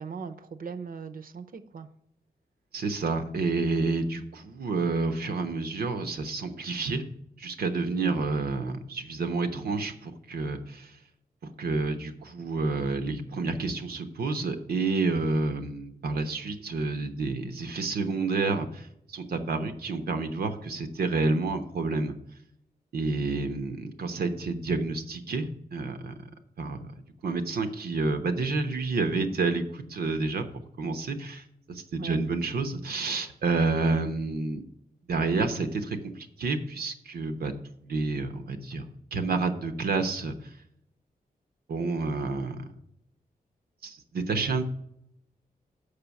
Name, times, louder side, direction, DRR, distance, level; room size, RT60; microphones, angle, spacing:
voice 1, 0.0-1.9 8.0-8.1 32.0-32.2, right 5 dB, 65° right, 9 dB, 0.7 m, -39 dB
voice 2, 2.7-7.0 7.4-10.9 11.6-22.1 22.9-26.1 26.6-26.9 27.2-30.5 30.8-34.6 35.1-37.5 37.9-38.8 39.1-40.3 41.7-42.7 43.8-44.6, right 3 dB, 90° right, 6 dB, 0.9 m, -29 dB
6.7 x 5.5 x 7.0 m, 0.77 s
wide cardioid pair, 110°, 16 cm